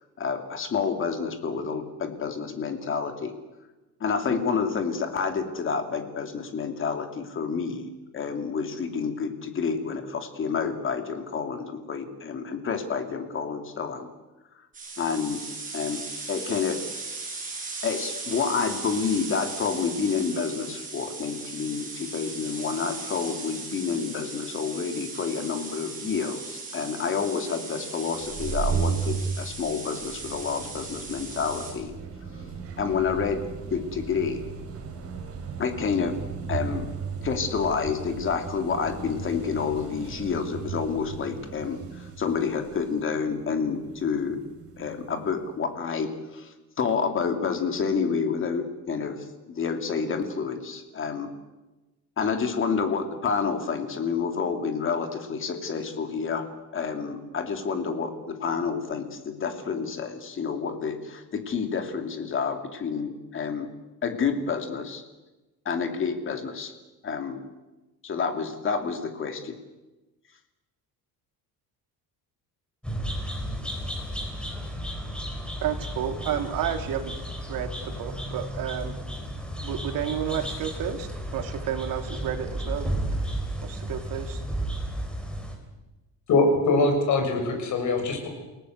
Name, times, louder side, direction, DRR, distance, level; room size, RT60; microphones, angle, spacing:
voice 1, 0.2-3.3 4.0-7.9 8.1-14.1 15.0-16.0 16.3-16.8 17.8-31.9 32.8-33.4 33.7-34.4 35.6-36.1 36.5-36.9 37.2-44.4 44.8-51.3 52.2-56.4 56.7-63.7 64.0-65.0 65.6-66.7 67.0-67.4 68.0-69.5, left 5 dB, 35° left, 6 dB, 2.7 m, -29 dB
sound 1, 14.7-31.7, right 4 dB, 20° right, 7.8 m, -38 dB
sound 2, 28.1-45.5, right 6 dB, 40° right, 5.0 m, -35 dB
sound 3, 72.8-85.6, right 1 dB, 5° left, 3.6 m, -33 dB
voice 2, 75.6-77.1 77.5-78.9 79.6-83.4 83.6-84.4, right 9 dB, 60° right, 6 dB, 3.0 m, -31 dB
voice 3, 86.3-88.3, left 3 dB, 50° left, 4 dB, 6.4 m, -22 dB
29.0 x 18.0 x 8.0 m, 1.1 s
cardioid pair, 170°, 38 cm